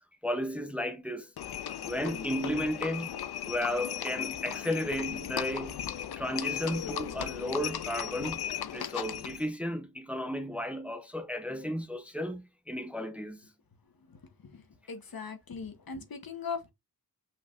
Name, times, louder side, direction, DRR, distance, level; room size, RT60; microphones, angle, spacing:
voice 1, 0.2-1.3 1.9-3.1 3.5-5.8 6.2-8.4 8.7-13.5, equal, 5° right, 0.6 m, -34 dB
Livestock farm animals working animals, 1.4-9.5, left 9 dB, 80° left, 0.5 m, -36 dB
voice 2, 14.9-16.7, left 5 dB, 65° left, 1.0 m, -39 dB
5.8 x 3.2 x 2.4 m
wide cardioid pair, 80°, 38 cm